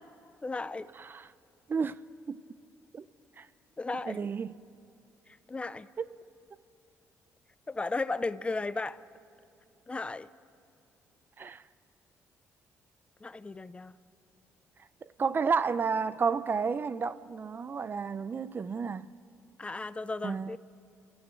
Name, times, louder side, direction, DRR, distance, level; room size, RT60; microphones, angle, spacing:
voice 1, 0.4-0.9 3.8-4.2 5.5-5.9 7.7-9.0 9.9-10.3 13.2-13.9 19.6-20.6, left 3 dB, 20° left, 0.6 m, -35 dB
voice 2, 0.9-1.3 1.7-2.0 2.3-2.4 2.9-3.1 3.4-3.5 4.1-4.5 6.0-6.1 11.4-11.6 15.0-19.1 20.2-20.6, right 5 dB, 40° right, 0.6 m, -31 dB
30.0 x 14.0 x 9.1 m
cardioid pair, 90°, 6 cm